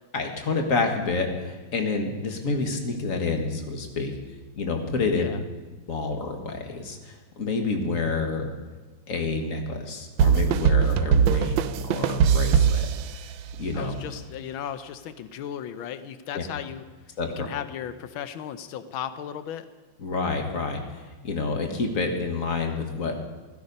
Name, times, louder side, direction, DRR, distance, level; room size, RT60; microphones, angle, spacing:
voice 1, 0.1-4.1 4.5-5.3 5.9-8.5 9.1-12.9 13.6-13.9 16.3-16.4 17.2-17.5 20.0-23.2, left 3 dB, 45° left, 4 dB, 1.9 m, -28 dB
sound 1, 10.2-13.8, right 7 dB, 80° right, 1.4 m, -21 dB
voice 2, 13.7-16.8 17.4-19.7, left 9 dB, 90° left, 11 dB, 1.6 m, -35 dB
16.0 x 15.0 x 5.4 m, 1.3 s
omnidirectional pair, 2.1 m